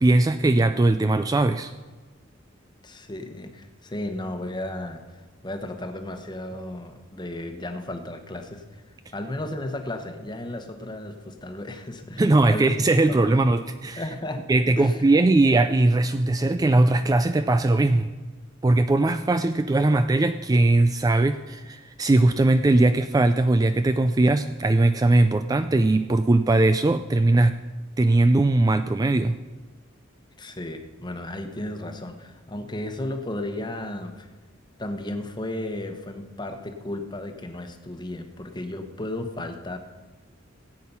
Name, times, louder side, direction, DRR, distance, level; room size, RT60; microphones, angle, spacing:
voice 1, 0.0-1.7 12.2-14.0 14.5-18.1 18.6-27.6 28.0-29.4, right 2 dB, 20° right, 10 dB, 0.3 m, -20 dB
voice 2, 2.8-5.0 5.4-8.8 9.1-12.7 13.1-13.3 14.0-14.4 14.8-15.0 30.4-34.3 34.8-39.8, left 1 dB, 20° left, 6 dB, 1.1 m, -34 dB
17.0 x 8.4 x 5.5 m, 1.3 s
head